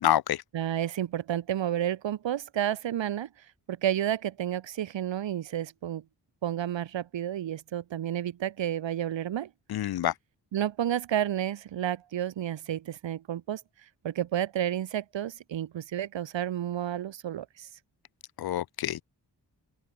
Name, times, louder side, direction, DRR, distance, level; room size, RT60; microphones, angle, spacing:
voice 1, 0.0-0.4 9.7-10.1 18.4-19.0, left 12 dB, 60° left, 0.5 m, -27 dB
voice 2, 0.5-3.3 3.7-6.0 6.4-9.5 10.5-13.6 14.0-17.7, right 11 dB, 80° right, 0.9 m, -31 dB
open air
cardioid pair, 55°, 44 cm